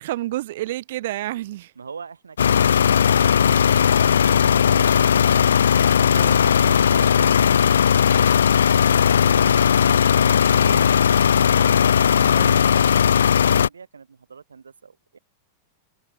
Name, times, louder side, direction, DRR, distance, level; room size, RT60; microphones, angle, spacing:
voice 1, 0.0-1.7 6.1-6.5 10.5-10.9 12.1-12.6, right 15 dB, 55° right, 6.1 m, -30 dB
voice 2, 1.8-10.4 10.7-11.0 11.5-15.2, right 5 dB, 75° right, 4.2 m, -43 dB
sound 1, 2.4-13.7, left 8 dB, 65° left, 0.7 m, -17 dB
open air
figure-of-eight pair, 90°, 0 cm